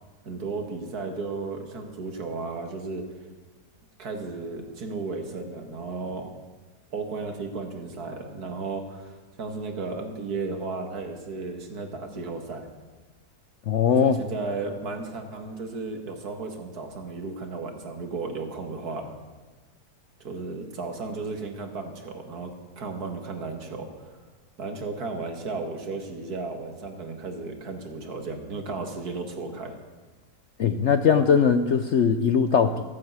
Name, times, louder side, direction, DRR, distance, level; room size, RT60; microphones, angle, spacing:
voice 1, 0.2-3.1 4.0-6.3 6.9-12.7 14.0-19.2 20.2-24.1 24.6-29.8, right 3 dB, 65° right, 4 dB, 2.2 m, -34 dB
voice 2, 13.7-14.2 30.6-32.8, left 7 dB, 60° left, 9 dB, 0.7 m, -20 dB
15.0 x 9.4 x 8.1 m, 1.3 s
omnidirectional pair, 1.8 m